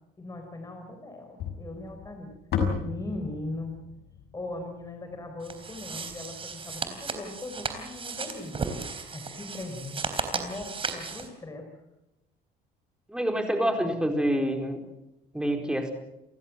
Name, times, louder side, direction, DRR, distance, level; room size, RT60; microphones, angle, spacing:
voice 1, 0.2-2.4 2.8-3.8 4.3-8.8 9.1-10.0 10.3-11.7, left 2 dB, 20° left, 4 dB, 4.5 m, -39 dB
sound 1, 1.4-5.7, left 6 dB, 70° left, 6.1 m, -34 dB
sound 2, 5.4-11.3, right 5 dB, 30° right, 3.8 m, -35 dB
voice 2, 13.1-14.8 15.3-15.9, equal, 5° right, 4 dB, 4.6 m, -27 dB
29.5 x 16.0 x 7.6 m, 0.91 s
cardioid pair, 110°, 17 cm